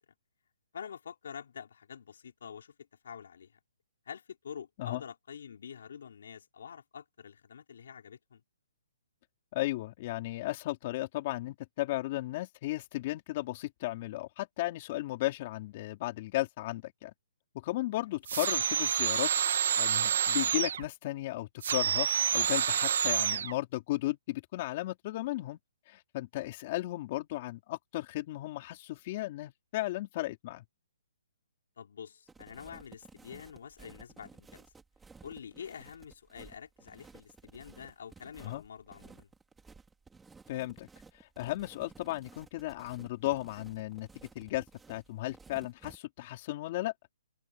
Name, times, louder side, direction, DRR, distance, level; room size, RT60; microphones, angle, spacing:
voice 1, 0.7-3.6 4.1-8.4 31.8-34.7 35.2-39.3, left 7 dB, 65° left, 4.1 m, -47 dB
voice 2, 9.5-17.1 17.5-19.3 19.8-22.1 22.3-25.6 25.9-30.6 38.4-38.6 40.5-40.9 41.1-44.1 44.4-46.9, left 17 dB, 35° left, 3.8 m, -35 dB
sound 1, 18.3-20.9 21.6-23.5, right 8 dB, 60° right, 1.6 m, -28 dB
sound 2, 32.3-46.0, right 4 dB, 5° right, 3.1 m, -55 dB
hypercardioid pair, 160°, 0 cm